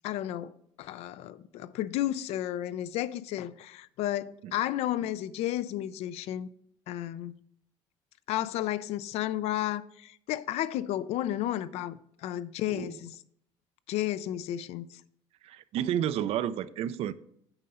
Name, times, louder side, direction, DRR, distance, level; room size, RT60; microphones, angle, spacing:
voice 1, 0.0-0.5 0.8-6.5 6.9-7.4 8.3-13.2 13.9-15.0, left 13 dB, 70° left, 0.4 m, -32 dB
voice 2, 15.4-17.1, right 10 dB, 65° right, 0.4 m, -31 dB
8.8 x 5.5 x 4.1 m
cardioid pair, 100°, 11 cm